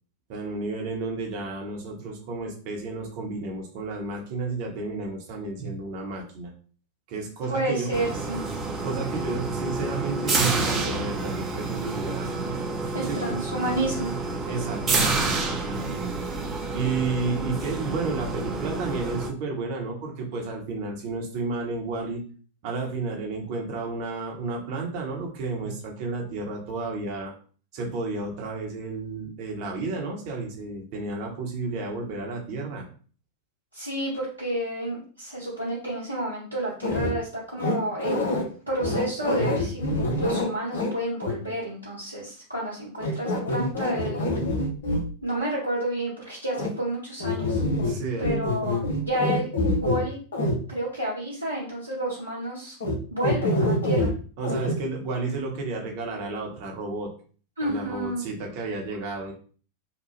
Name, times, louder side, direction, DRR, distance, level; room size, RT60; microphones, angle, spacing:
voice 1, 0.3-6.5 7.1-7.9 8.8-12.4 13.0-13.4 14.5-16.2 16.7-22.2 22.6-27.3 27.7-32.8 47.8-48.4 54.4-57.1 57.6-59.3, right 3 dB, 45° right, 1 dB, 0.9 m, -32 dB
voice 2, 7.5-8.4 12.9-14.2 33.7-39.8 40.2-44.3 45.2-47.6 48.2-49.5 49.8-50.2 50.7-52.8 53.1-54.1 57.6-58.2, right 1 dB, 85° right, -6 dB, 0.8 m, -30 dB
sound 1, 7.9-19.3, right 3 dB, 20° right, 0.7 m, -29 dB
sound 2, 36.8-37.1 37.6-38.4 38.8-40.9 41.2-41.3 43.0-45.0 46.5-46.7 47.2-48.0 48.2-50.0 50.3-50.6 52.8-52.9 53.2-54.1 54.4-54.7, left 1 dB, 65° left, 0.7 m, -25 dB
2.9 x 2.2 x 3.1 m, 0.41 s
figure-of-eight pair, 90°, 0 cm